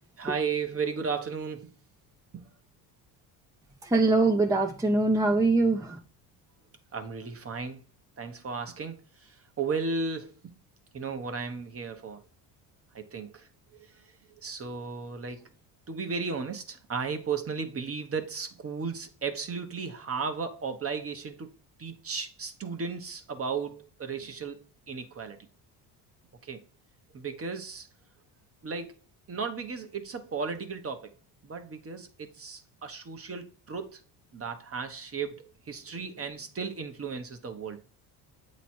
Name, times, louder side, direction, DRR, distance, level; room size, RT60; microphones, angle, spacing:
voice 1, 0.2-1.7 2.3-2.4 6.9-7.8 8.2-10.5 10.9-12.2 12.9-14.1 14.4-15.5 15.9-21.5 21.8-25.5 26.4-26.6 27.1-27.9 28.6-28.9 29.3-31.1 31.4-34.0 34.3-37.8, right 5 dB, 30° right, 1.1 m, -35 dB
voice 2, 3.8-6.0, right 2 dB, 5° right, 0.7 m, -23 dB
8.1 x 3.1 x 4.4 m
cardioid pair, 95°, 44 cm